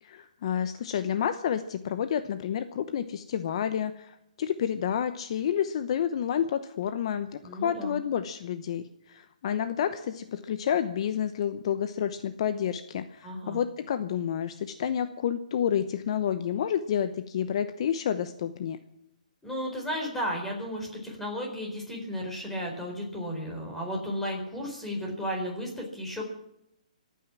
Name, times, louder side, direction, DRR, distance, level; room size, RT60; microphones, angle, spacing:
voice 1, 0.0-18.8, left 9 dB, 45° left, 11 dB, 0.9 m, -29 dB
voice 2, 7.4-8.0 13.2-13.6 19.4-26.2, equal, 5° left, 0 dB, 4.4 m, -34 dB
25.0 x 9.4 x 6.1 m, 0.80 s
hypercardioid pair, 160°, 4 cm